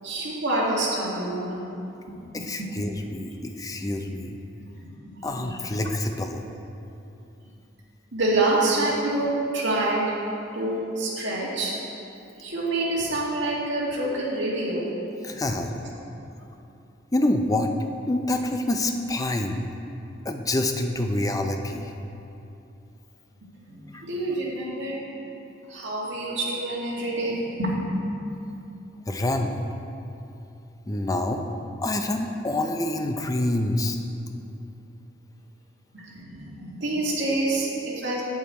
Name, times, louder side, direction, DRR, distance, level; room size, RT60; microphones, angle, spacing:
voice 1, 0.0-1.7 2.1-2.7 4.7-5.5 8.1-10.2 10.5-11.8 12.4-15.0 15.3-15.4 23.7-25.0 25.7-28.0 35.9-38.2, right 2 dB, 70° right, -5 dB, 2.1 m, -27 dB
voice 2, 2.3-4.4 5.2-6.4 15.2-15.8 17.1-17.7 18.1-19.6 20.2-21.9 23.9-24.1 29.1-29.6 30.9-31.4 31.8-34.0, left 1 dB, 20° left, 5 dB, 0.5 m, -26 dB
8.4 x 7.9 x 4.3 m, 2.8 s
head